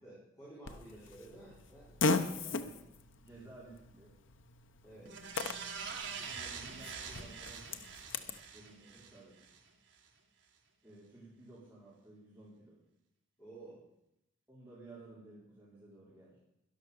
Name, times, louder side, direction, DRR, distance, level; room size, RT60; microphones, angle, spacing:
voice 1, 0.0-2.5 4.8-5.1 8.8-9.0 13.4-13.8, right 2 dB, 15° left, -8 dB, 4.8 m, -53 dB
Fart, 0.6-8.4, left 3 dB, 70° left, 0.9 m, -39 dB
voice 2, 3.2-4.1 6.3-7.9 8.5-9.4 10.8-12.8 14.5-16.4, right 2 dB, 10° right, -7 dB, 3.6 m, -55 dB
sound 1, 5.1-9.6 10.0-10.1, right 6 dB, 65° right, 1.9 m, -45 dB
12.5 x 11.5 x 6.6 m, 0.86 s
head